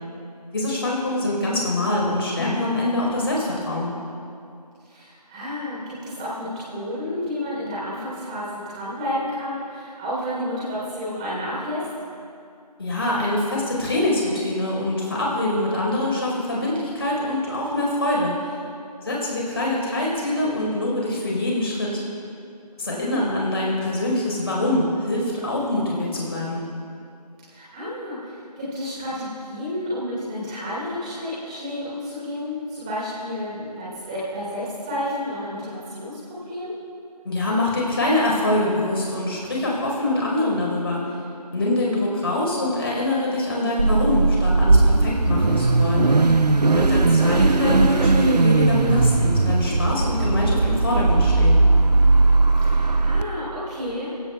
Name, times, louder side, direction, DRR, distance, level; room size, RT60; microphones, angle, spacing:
voice 1, 0.5-3.9 12.8-18.5 19.0-22.0 22.8-26.6 37.2-41.0 41.5-46.1 46.7-51.6, left 1 dB, 35° left, -3 dB, 4.5 m, -24 dB
voice 2, 4.9-11.9 22.8-23.2 27.4-36.2 36.4-36.7 52.6-54.1, left 1 dB, 10° right, -9 dB, 3.7 m, -31 dB
Car / Idling / Accelerating revving vroom, 43.8-53.2, right 3 dB, 75° right, 0.8 m, -18 dB
28.5 x 16.5 x 2.4 m, 2.5 s
figure-of-eight pair, 170°, 21 cm